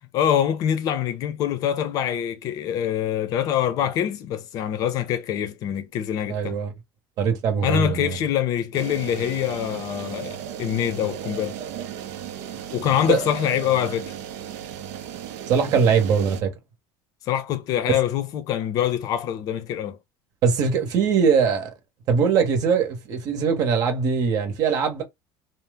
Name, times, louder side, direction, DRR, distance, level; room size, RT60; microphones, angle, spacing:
voice 1, 0.1-6.6 7.6-11.6 12.7-14.1 17.2-20.0, left 10 dB, 45° left, 0.6 m, -24 dB
voice 2, 6.3-6.7 7.2-8.2 13.1-13.2 15.5-16.5 20.4-21.7 22.1-25.0, right 6 dB, 45° right, 0.9 m, -21 dB
sound 1, 8.7-16.4, right 9 dB, 70° right, 0.6 m, -35 dB
2.8 x 2.0 x 3.3 m
cardioid pair, 155°, 9 cm